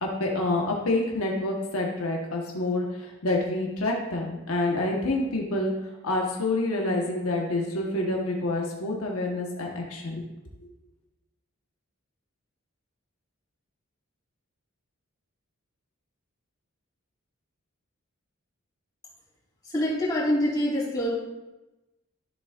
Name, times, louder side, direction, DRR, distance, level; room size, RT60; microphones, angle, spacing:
voice 1, 0.0-5.7 6.0-10.2, left 2 dB, 80° left, -1 dB, 1.1 m, -27 dB
voice 2, 19.6-21.1, equal, 20° left, -7 dB, 3.2 m, -25 dB
13.0 x 7.0 x 2.4 m, 1.0 s
head